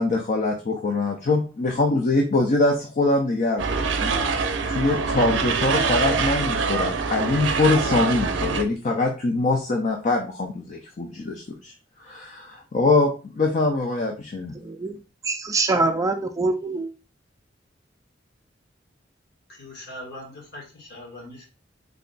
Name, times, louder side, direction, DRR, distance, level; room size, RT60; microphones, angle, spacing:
voice 1, 0.0-11.7 12.0-14.5, left 2 dB, 40° left, 1 dB, 0.5 m, -23 dB
sound 1, 3.6-8.6, right 4 dB, 80° right, 0.5 m, -24 dB
voice 2, 14.5-16.9, right 3 dB, 20° right, 6 dB, 0.3 m, -25 dB
voice 3, 19.5-21.4, left 1 dB, 65° left, -1 dB, 1.5 m, -41 dB
3.4 x 2.2 x 3.9 m, 0.34 s
head